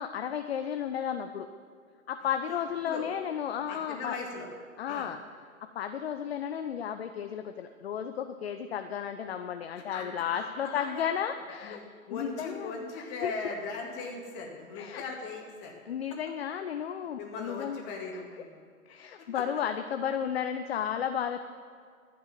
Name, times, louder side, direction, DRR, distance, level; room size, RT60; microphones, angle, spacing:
voice 1, 0.0-1.5 2.1-4.2 4.8-5.2 5.6-11.8 12.1-13.5 14.8-15.0 15.9-17.8 18.9-21.4, left 8 dB, 45° left, 8 dB, 0.7 m, -33 dB
voice 2, 3.7-4.5 4.9-5.1 9.8-11.1 11.6-15.7 17.2-18.6 19.3-19.4, left 4 dB, 25° left, 1 dB, 2.0 m, -39 dB
12.5 x 8.7 x 7.2 m, 2.2 s
figure-of-eight pair, 125°, 42 cm